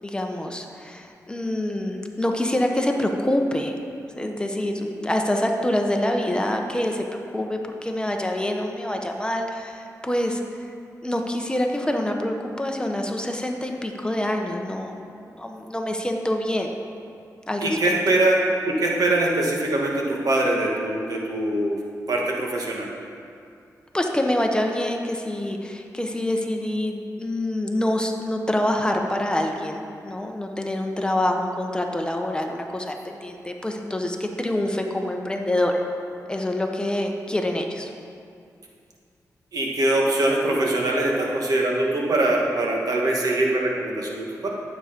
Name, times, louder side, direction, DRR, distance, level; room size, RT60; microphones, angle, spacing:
voice 1, 0.0-3.7 4.2-10.4 11.0-14.9 15.3-16.7 17.5-17.9 23.9-35.8 36.3-37.9, left 1 dB, 15° left, 3 dB, 1.0 m, -26 dB
voice 2, 17.6-18.4 18.7-21.8 22.1-22.9 39.5-44.5, right 2 dB, 70° right, -1 dB, 1.8 m, -23 dB
12.0 x 8.2 x 5.2 m, 2.4 s
wide cardioid pair, 95°, 7 cm